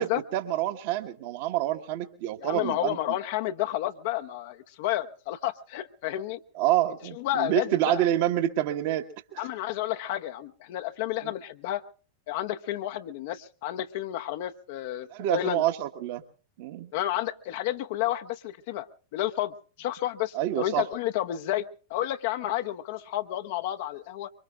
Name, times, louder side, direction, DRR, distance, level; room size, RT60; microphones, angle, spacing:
voice 1, 0.0-3.2 6.5-9.4 11.2-11.3 15.1-16.2 16.6-16.9 20.3-20.8, right 13 dB, 50° right, 8 dB, 1.4 m, -27 dB
voice 2, 2.4-6.4 7.1-8.0 9.4-11.8 12.3-15.6 16.9-18.9 19.1-21.6 21.9-24.3, left 13 dB, 50° left, 8 dB, 0.8 m, -31 dB
25.0 x 23.5 x 2.4 m, 0.39 s
figure-of-eight pair, 90°, 0 cm